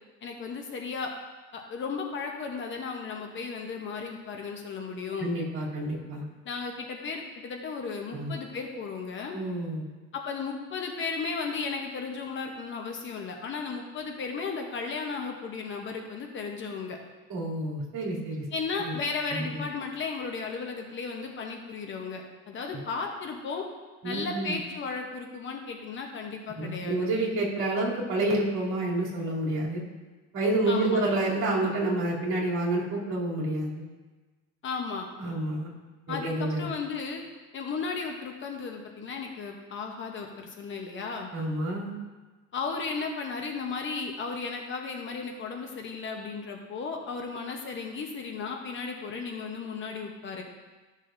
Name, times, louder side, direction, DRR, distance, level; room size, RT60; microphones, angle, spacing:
voice 1, 0.2-1.1 1.5-5.3 6.4-9.4 10.1-17.0 18.5-23.7 24.0-27.0 30.7-31.0 34.6-35.1 36.1-37.2 37.5-41.3 42.5-50.4, left 4 dB, 35° left, 2 dB, 0.8 m, -35 dB
voice 2, 5.2-6.2 8.1-8.3 9.3-9.9 17.3-18.4 18.8-19.0 19.3-19.6 24.0-24.5 26.6-29.8 30.3-33.8 35.2-35.7 36.1-36.7 41.3-41.9, right 2 dB, 55° right, -6 dB, 2.8 m, -29 dB
13.0 x 6.5 x 2.5 m, 1.3 s
cardioid pair, 160°, 35 cm